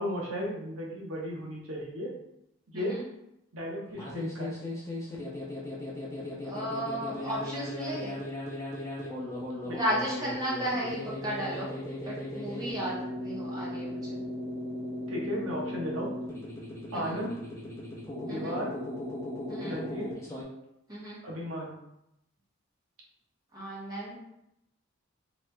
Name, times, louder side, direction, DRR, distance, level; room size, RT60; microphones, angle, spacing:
voice 1, 0.0-2.1 2.7-3.0 3.5-4.6 9.6-9.8 15.1-16.1 16.9-17.4 18.2-18.7 19.6-20.1 21.2-21.7, equal, 75° right, -2 dB, 0.8 m, -35 dB
sound 1, 3.9-20.4, left 1 dB, 15° left, 0.6 m, -37 dB
voice 2, 6.4-8.2 9.7-11.7 12.0-14.2 16.9-17.1 18.3-18.6 19.5-19.8 20.9-21.2 23.5-24.2, right 1 dB, 20° right, -7 dB, 0.8 m, -34 dB
3.0 x 2.4 x 3.2 m, 0.82 s
head